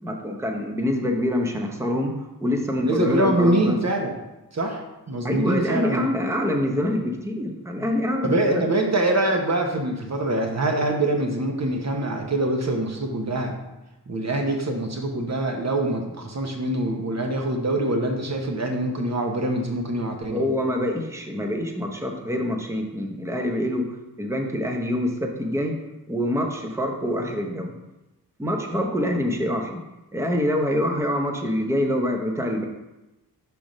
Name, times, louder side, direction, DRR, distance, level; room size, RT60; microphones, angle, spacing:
voice 1, 0.0-3.8 5.2-8.6 20.3-25.8 26.1-27.8 28.4-29.8 30.1-32.6, left 1 dB, 5° right, 2 dB, 0.7 m, -25 dB
voice 2, 2.8-4.1 4.5-6.1 7.8-7.9 8.2-13.6 14.1-20.4, right 1 dB, 40° right, 3 dB, 1.0 m, -24 dB
6.0 x 3.5 x 5.2 m, 0.99 s
wide cardioid pair, 90°, 40 cm